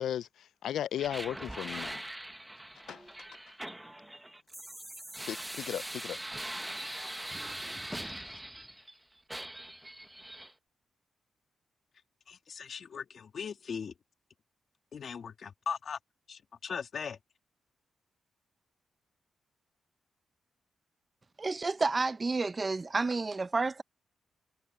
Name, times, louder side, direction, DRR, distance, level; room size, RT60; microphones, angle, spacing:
voice 1, 0.0-2.0 2.9-3.0 5.3-6.2 6.8-7.0 7.7-8.4, left 10 dB, 85° left, 0.3 m, -37 dB
sound 1, 0.9-8.9 9.3-10.5, right 1 dB, 10° right, 1.0 m, -42 dB
voice 2, 12.3-13.9 14.9-16.0 16.3-17.2, left 6 dB, 60° left, 2.6 m, -39 dB
voice 3, 21.4-23.8, right 3 dB, 30° right, 0.7 m, -30 dB
cardioid pair, 90°, 0 cm